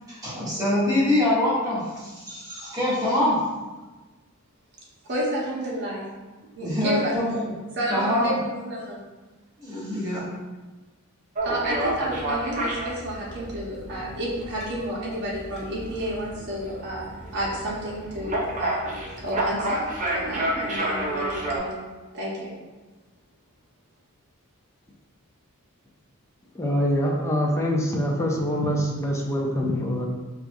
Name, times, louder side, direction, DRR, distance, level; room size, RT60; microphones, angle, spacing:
voice 1, 0.1-3.4 6.6-7.5 7.9-8.4 9.6-10.2, left 1 dB, 15° right, -10 dB, 1.3 m, -24 dB
voice 2, 5.0-6.1 6.5-7.1 7.7-9.0 11.4-18.9 19.2-19.8 20.1-21.8 22.1-22.5, right 1 dB, 50° right, -6 dB, 1.0 m, -31 dB
sound 1, 11.3-21.6, right 1 dB, 35° right, 0.5 m, -30 dB
voice 3, 26.5-30.1, equal, 15° left, -1 dB, 0.5 m, -24 dB
4.5 x 2.4 x 2.6 m, 1.2 s
head